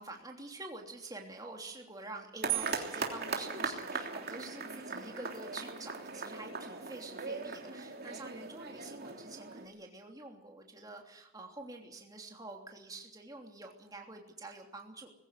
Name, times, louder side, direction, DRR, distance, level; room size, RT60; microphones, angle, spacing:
voice 1, 0.0-15.1, right 2 dB, 15° right, 2 dB, 3.1 m, -47 dB
sound 1, 2.4-9.7, right 4 dB, 45° right, 3.3 m, -40 dB
sound 2, 2.5-4.3, right 21 dB, 70° right, 2.3 m, -40 dB
21.0 x 16.0 x 9.6 m, 0.88 s
head